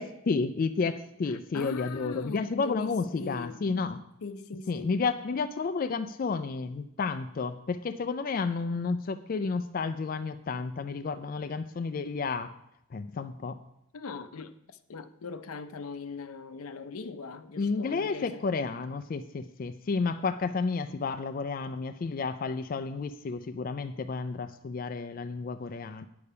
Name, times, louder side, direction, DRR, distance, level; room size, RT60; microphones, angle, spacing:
voice 1, 0.0-4.0 4.7-12.5 12.9-13.6 17.6-26.1, left 4 dB, 40° left, 0.3 m, -31 dB
voice 2, 1.3-3.6 4.2-4.9 13.9-18.4, left 4 dB, 80° left, 0.6 m, -40 dB
9.4 x 6.8 x 5.5 m
head